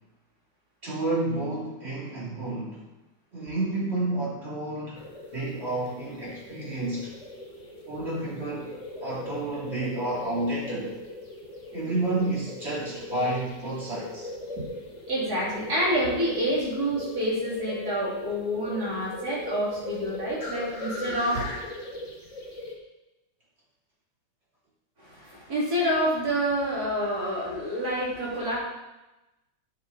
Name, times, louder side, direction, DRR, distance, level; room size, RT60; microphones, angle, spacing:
voice 1, 0.8-2.8 3.3-5.0 5.3-7.1 7.9-10.9 11.7-14.3, right 2 dB, 35° right, -7 dB, 3.2 m, -30 dB
sound 1, 5.0-22.7, left 1 dB, 20° left, 1.5 m, -39 dB
voice 2, 15.1-21.5 25.0-28.5, equal, 50° right, -5 dB, 3.3 m, -28 dB
9.4 x 7.0 x 4.1 m, 0.99 s
omnidirectional pair, 2.1 m